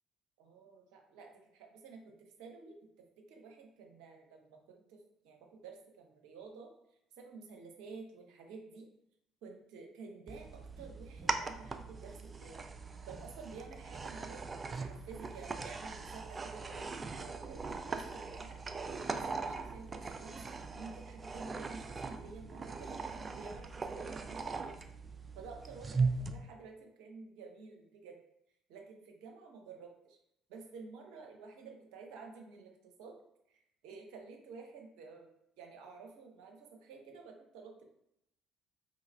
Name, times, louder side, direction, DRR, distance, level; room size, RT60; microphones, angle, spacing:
voice 1, 0.4-2.7 3.2-5.0 5.2-6.7 7.2-8.9 9.4-12.7 13.0-18.6 18.9-20.4 20.7-24.8 25.3-28.2 28.7-30.2 30.5-33.2 33.5-35.3 35.6-37.8, right 4 dB, 70° right, 2 dB, 0.7 m, -51 dB
sound 1, 10.3-26.3, right 4 dB, 30° right, 0.4 m, -40 dB
3.9 x 2.3 x 3.2 m, 0.78 s
hypercardioid pair, 50°, 0 cm